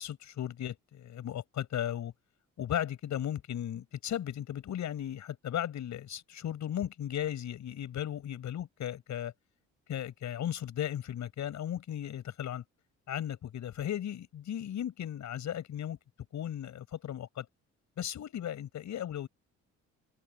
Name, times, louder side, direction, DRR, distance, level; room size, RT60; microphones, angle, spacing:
voice 1, 0.0-2.1 2.6-9.3 9.9-12.6 13.1-16.0 16.3-17.5 18.0-19.3, left 10 dB, 70° left, 6.8 m, -36 dB
open air
cardioid pair, 90°, 30 cm